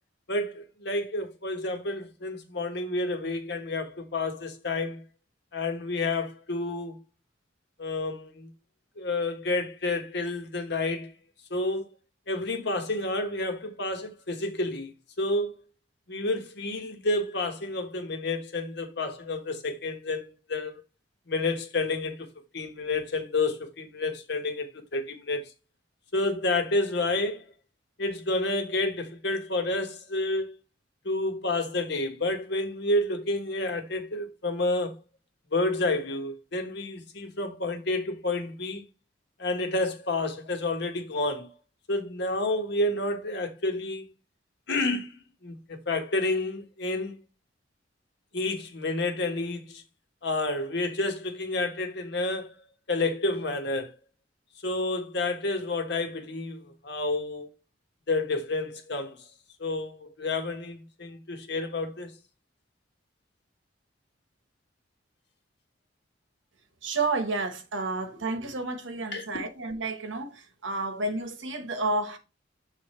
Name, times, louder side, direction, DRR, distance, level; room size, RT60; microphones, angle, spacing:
voice 1, 0.3-5.0 5.5-7.0 7.8-8.5 9.0-11.1 11.5-11.9 12.3-14.9 15.2-15.5 16.1-20.8 21.3-22.3 22.5-25.5 26.1-27.5 28.0-30.6 31.0-34.9 35.5-38.8 39.4-41.5 41.9-44.1 44.7-47.2 48.3-49.8 50.2-52.5 52.9-53.9 54.6-57.5 58.1-59.2 59.6-62.1 69.1-69.3, left 2 dB, 60° left, 1.2 m, -30 dB
voice 2, 66.8-72.2, right 3 dB, 80° right, 1.1 m, -31 dB
7.0 x 3.3 x 4.3 m
head